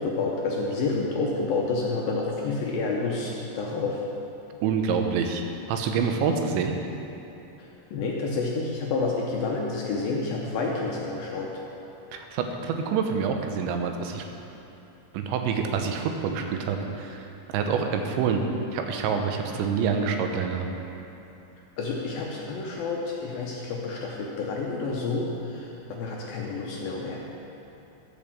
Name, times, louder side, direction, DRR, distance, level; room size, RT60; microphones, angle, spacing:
voice 1, 0.0-4.1 7.6-11.6 21.8-27.2, left 3 dB, 75° left, -2 dB, 2.3 m, -29 dB
voice 2, 4.6-5.4 5.7-6.7 12.1-14.2 15.1-18.4 18.7-20.7, right 6 dB, 90° right, 4 dB, 3.2 m, -27 dB
13.0 x 5.4 x 7.4 m, 2.9 s
omnidirectional pair, 5.1 m